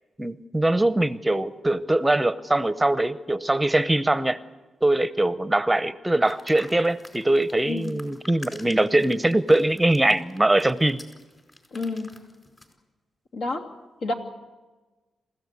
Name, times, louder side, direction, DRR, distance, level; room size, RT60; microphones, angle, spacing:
voice 1, 0.2-4.4 4.8-11.0, right 1 dB, 10° right, 13 dB, 0.8 m, -22 dB
sound 1, 6.2-12.7, left 1 dB, 20° left, 4.8 m, -47 dB
voice 2, 7.6-8.0 11.7-12.1 13.3-13.6 14.0-14.1, left 2 dB, 75° left, 2 dB, 2.9 m, -29 dB
27.5 x 15.0 x 8.3 m, 1.2 s
cardioid pair, 95°, 0 cm